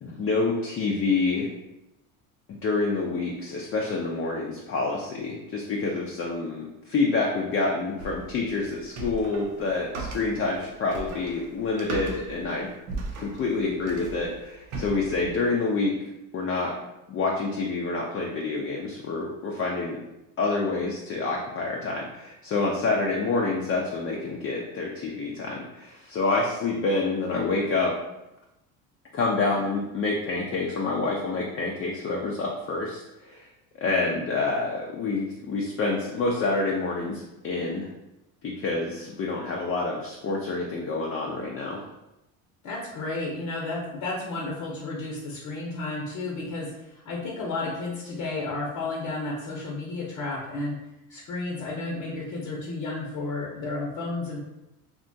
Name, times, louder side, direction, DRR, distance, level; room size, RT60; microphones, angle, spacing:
voice 1, 0.0-1.5 2.6-12.7 13.2-16.0 16.3-16.7 17.1-20.0 20.4-27.9 29.1-33.5 33.8-37.9 38.4-41.8, left 3 dB, 30° left, -2 dB, 0.5 m, -27 dB
sound 1, 8.0-15.4, right 3 dB, 80° right, 0.7 m, -38 dB
voice 2, 42.6-50.8 51.1-54.4, left 2 dB, 55° left, -3 dB, 0.8 m, -32 dB
2.8 x 2.3 x 2.6 m, 0.92 s
hypercardioid pair, 80°, 42 cm